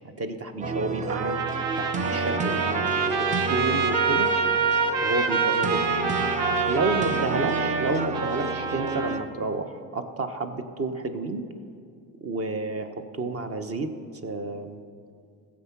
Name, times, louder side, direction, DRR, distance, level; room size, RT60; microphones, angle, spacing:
voice 1, 0.2-4.3 5.0-5.9 6.7-11.5 12.2-14.0 14.2-14.8, right 3 dB, 35° right, 8 dB, 1.0 m, -30 dB
sound 1, 0.6-9.2, right 3 dB, 20° right, 0.5 m, -31 dB
Trumpet, 1.1-9.3, right 5 dB, 80° right, 1.1 m, -26 dB
15.0 x 7.5 x 5.9 m, 2.4 s
supercardioid pair, 85°, 41 cm